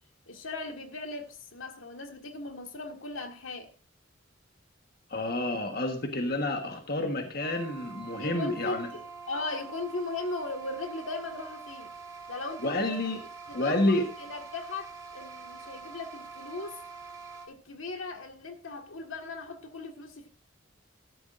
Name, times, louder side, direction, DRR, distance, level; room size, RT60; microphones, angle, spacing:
voice 1, 0.3-3.7 8.2-11.9 12.3-12.9 13.5-16.8 17.5-20.3, left 3 dB, 85° left, 1.8 m, -38 dB
voice 2, 5.1-8.9 12.6-13.2 13.5-14.0, left 1 dB, 50° left, 1.3 m, -29 dB
sound 1, 7.4-17.5, right 5 dB, 20° right, 1.7 m, -45 dB
14.0 x 11.5 x 2.5 m
head